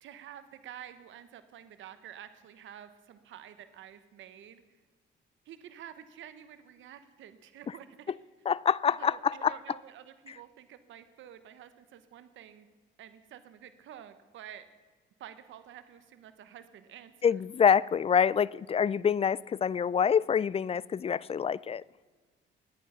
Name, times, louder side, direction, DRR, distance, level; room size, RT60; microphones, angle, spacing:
voice 1, 0.0-4.6 5.4-7.9 9.0-12.7 13.0-14.6 15.2-17.3, right 10 dB, 75° right, 1.1 m, -49 dB
voice 2, 8.5-9.6 17.2-21.8, left 7 dB, 30° left, 0.4 m, -26 dB
21.5 x 8.9 x 5.7 m
cardioid pair, 90°, 20 cm